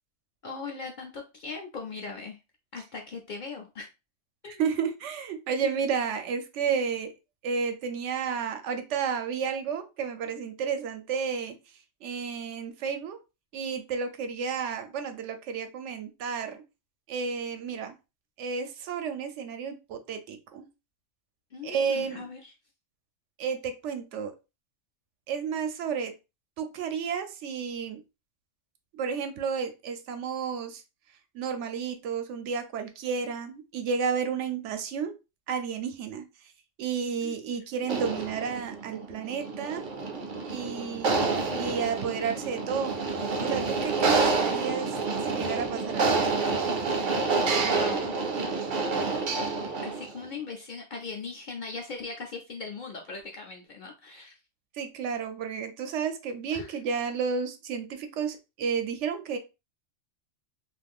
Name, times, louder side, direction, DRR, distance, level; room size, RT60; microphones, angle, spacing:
voice 1, 0.4-2.4 2.7-3.9 4.4-4.6 5.6-5.8 21.5-22.5 37.2-37.4 47.5-48.2 49.8-54.4 56.5-56.8, left 4 dB, 55° left, 2 dB, 0.5 m, -39 dB
voice 2, 4.6-7.1 7.4-11.5 12.0-13.2 13.5-16.6 17.1-17.9 18.4-20.7 21.6-22.3 23.4-24.3 25.3-26.1 26.6-28.0 28.9-30.8 31.3-35.1 35.5-36.2 36.8-39.8 40.5-42.9 43.4-45.0 45.2-46.4 54.7-59.4, right 6 dB, 80° right, 7 dB, 0.9 m, -32 dB
sound 1, 37.8-50.2, right 4 dB, 55° right, 0.6 m, -28 dB
2.5 x 2.3 x 3.5 m, 0.27 s
omnidirectional pair, 1.2 m